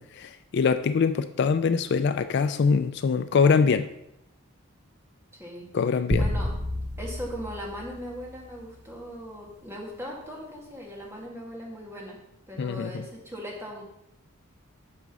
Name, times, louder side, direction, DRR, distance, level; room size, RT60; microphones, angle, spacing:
voice 1, 0.0-3.9 5.7-6.3 12.6-13.1, left 5 dB, 50° left, 11 dB, 0.3 m, -23 dB
sound 1, 6.1-8.6, equal, 35° right, 1.1 m, -30 dB
voice 2, 6.2-6.5 7.0-12.2 12.5-13.8, equal, 10° right, -2 dB, 1.9 m, -39 dB
8.7 x 5.1 x 6.1 m, 0.83 s
head